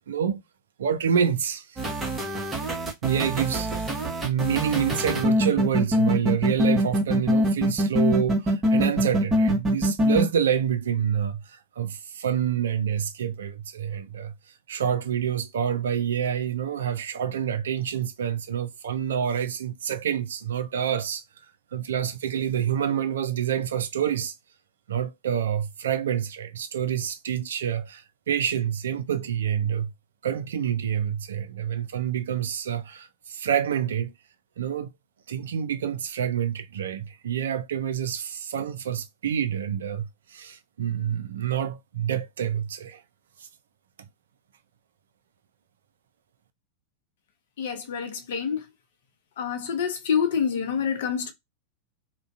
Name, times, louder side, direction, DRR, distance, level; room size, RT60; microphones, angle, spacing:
voice 1, 0.1-0.4 0.8-1.8 3.0-21.2 21.7-24.3 24.9-29.9 30.2-34.1 34.6-34.9 35.3-43.0 43.4-43.5, right 9 dB, 65° right, 0.3 m, -27 dB
sound 1, 1.8-10.2, equal, 15° right, 0.8 m, -23 dB
voice 2, 47.6-48.6 49.4-51.3, left 7 dB, 55° left, 0.6 m, -27 dB
2.4 x 2.1 x 2.4 m
figure-of-eight pair, 90°, 0 cm